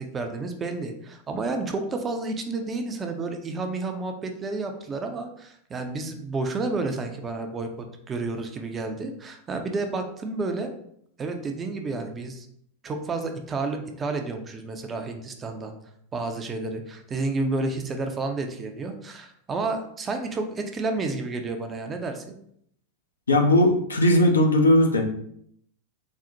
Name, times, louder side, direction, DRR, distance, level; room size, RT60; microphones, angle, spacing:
voice 1, 0.0-10.7 11.2-12.5 12.8-15.7 16.1-22.4, right 3 dB, 20° right, 5 dB, 0.4 m, -30 dB
voice 2, 23.3-25.0, left 1 dB, 75° left, 3 dB, 0.5 m, -18 dB
4.2 x 2.0 x 2.6 m, 0.69 s
figure-of-eight pair, 90°, 0 cm